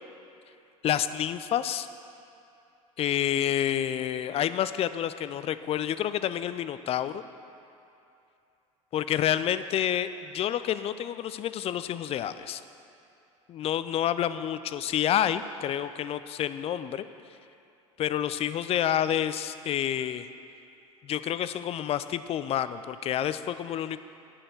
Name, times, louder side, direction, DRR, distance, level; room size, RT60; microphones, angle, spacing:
voice 1, 0.8-1.9 3.0-7.2 8.9-12.6 13.5-17.0 18.0-20.3 21.0-24.0, left 10 dB, 35° left, 13 dB, 0.4 m, -29 dB
9.9 x 5.7 x 6.6 m, 2.7 s
figure-of-eight pair, 70°, 17 cm